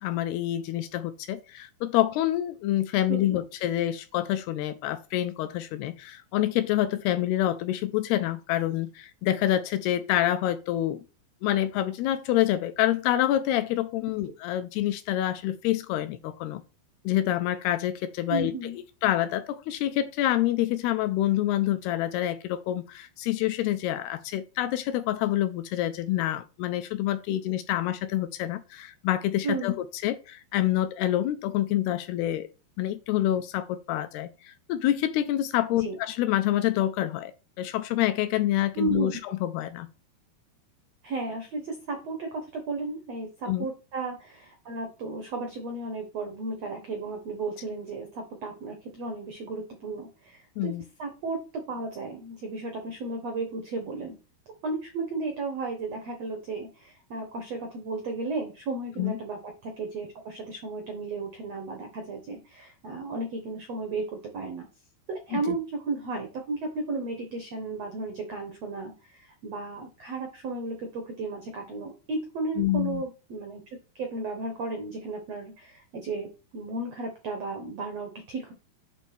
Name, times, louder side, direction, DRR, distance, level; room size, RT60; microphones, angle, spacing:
voice 1, 0.0-11.0 11.4-16.6 17.1-18.5 19.0-32.5 32.8-39.9 43.5-43.7 50.6-50.8 59.0-59.2 65.3-65.6 72.6-73.0, left 13 dB, 80° left, 2.4 m, -27 dB
voice 2, 18.3-18.8 29.4-29.8 35.7-36.0 38.7-39.1 41.0-54.1 54.6-64.7 65.1-73.6 73.9-78.5, right 3 dB, 90° right, 1.4 m, -34 dB
8.2 x 3.5 x 6.0 m
omnidirectional pair, 4.9 m